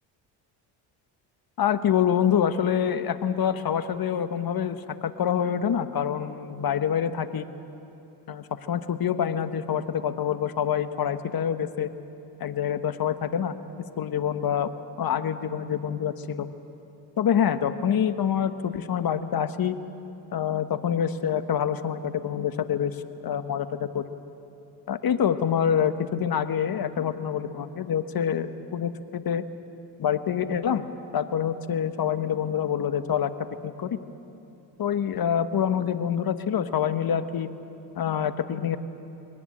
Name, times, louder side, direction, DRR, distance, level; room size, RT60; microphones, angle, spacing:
voice 1, 1.6-7.4 8.3-11.9 12.4-13.5 14.0-14.7 15.0-16.5 17.2-19.7 20.3-24.1 24.9-29.4 30.0-30.9 31.1-33.3 33.6-34.0 34.8-37.5 37.9-38.8, left 8 dB, 45° left, 11 dB, 1.4 m, -26 dB
22.0 x 19.5 x 8.7 m, 2.9 s
supercardioid pair, 65°, 50 cm